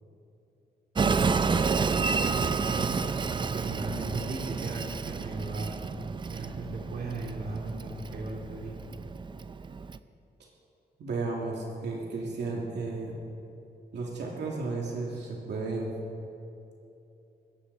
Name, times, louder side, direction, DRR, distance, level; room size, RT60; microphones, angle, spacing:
Train, 1.0-10.0, right 4 dB, 25° right, 0.4 m, -30 dB
voice 1, 1.9-3.0 3.5-5.8 6.3-8.8, right 3 dB, 60° right, -1 dB, 2.6 m, -37 dB
voice 2, 11.0-13.2 13.9-15.9, right 3 dB, 80° right, -2 dB, 2.4 m, -33 dB
20.5 x 16.0 x 4.1 m, 2.8 s
wide cardioid pair, 155°, 18 cm